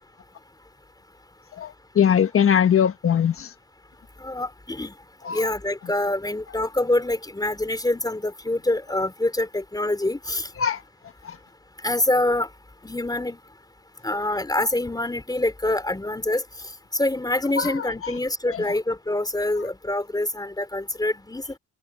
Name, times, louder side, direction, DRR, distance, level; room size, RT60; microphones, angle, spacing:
voice 1, 1.6-3.5 5.3-5.4 10.6-10.8 17.6-17.7, left 8 dB, 45° left, 1.4 m, -20 dB
voice 2, 4.2-4.9 5.3-10.5 11.8-12.5 12.8-13.4 14.0-16.4 16.9-21.4, left 2 dB, 15° left, 3.7 m, -25 dB
cardioid pair, 90°, 30 cm